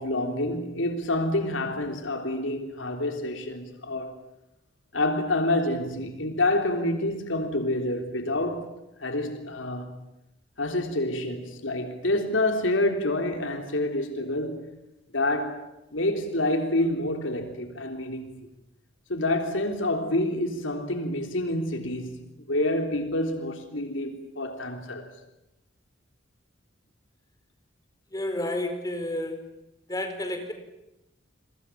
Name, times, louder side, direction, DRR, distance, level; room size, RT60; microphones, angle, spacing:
voice 1, 0.0-4.1 4.9-8.7 9.0-9.9 10.6-14.7 15.1-18.4 19.1-25.1, left 1 dB, 85° left, 3.5 m, -28 dB
voice 2, 28.1-29.5 29.9-30.5, left 1 dB, 20° left, 4.5 m, -31 dB
29.0 x 23.5 x 7.5 m
head